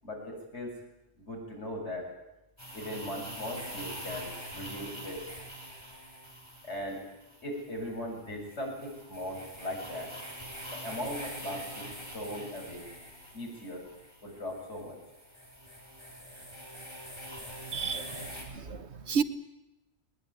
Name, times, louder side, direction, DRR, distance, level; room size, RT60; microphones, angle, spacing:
voice 1, 0.0-0.7 1.2-2.1 2.7-5.3 6.6-7.0 7.4-10.1 10.7-12.9 13.3-13.9 14.2-15.0, left 1 dB, 75° left, -1 dB, 7.8 m, -39 dB
sound 1, 2.6-18.4, equal, 25° left, 5.9 m, -45 dB
voice 2, 17.7-18.3 18.5-19.2, right 6 dB, 70° right, 11 dB, 1.5 m, -31 dB
21.0 x 20.5 x 9.5 m, 0.96 s
omnidirectional pair, 1.2 m